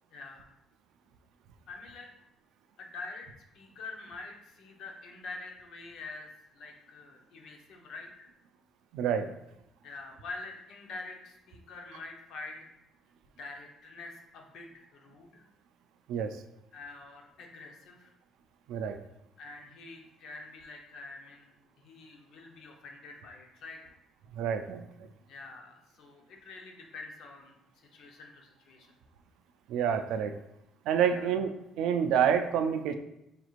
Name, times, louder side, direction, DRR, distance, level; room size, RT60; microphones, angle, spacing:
voice 1, 0.1-0.5 1.7-2.1 2.8-3.3 3.5-6.3 6.5-8.3 9.8-12.7 13.4-15.4 16.7-18.1 19.4-23.9 25.3-28.9 31.0-31.3, left 3 dB, 65° left, 2 dB, 0.7 m, -46 dB
voice 2, 8.9-9.3 16.1-16.4 18.7-19.0 24.3-24.9 29.7-30.3 30.9-33.0, right 8 dB, 80° right, 7 dB, 0.3 m, -28 dB
4.9 x 3.0 x 2.4 m, 0.85 s
cardioid pair, 155°, 0 cm